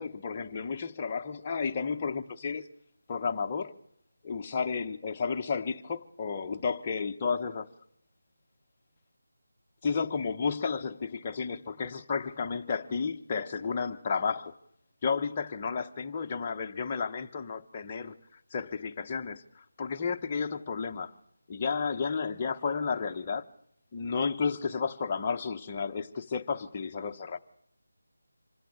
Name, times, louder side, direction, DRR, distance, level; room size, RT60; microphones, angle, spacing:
voice 1, 0.0-2.6 3.1-3.7 4.2-7.7 9.8-14.5 15.0-18.2 18.5-21.1 21.5-23.4 23.9-27.4, left 5 dB, 15° left, 0.9 m, -32 dB
26.0 x 15.5 x 8.7 m
figure-of-eight pair, 175°, 0 cm